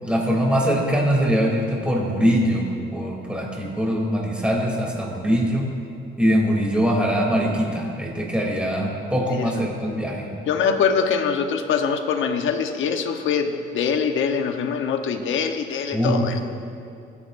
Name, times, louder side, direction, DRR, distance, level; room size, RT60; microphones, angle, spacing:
voice 1, 0.0-5.7 6.2-10.3 15.9-16.3, equal, 5° right, -2 dB, 3.2 m, -22 dB
voice 2, 9.3-9.6 10.5-16.4, left 6 dB, 80° left, 5 dB, 1.1 m, -23 dB
22.5 x 9.8 x 2.7 m, 2.5 s
cardioid pair, 90°, 20 cm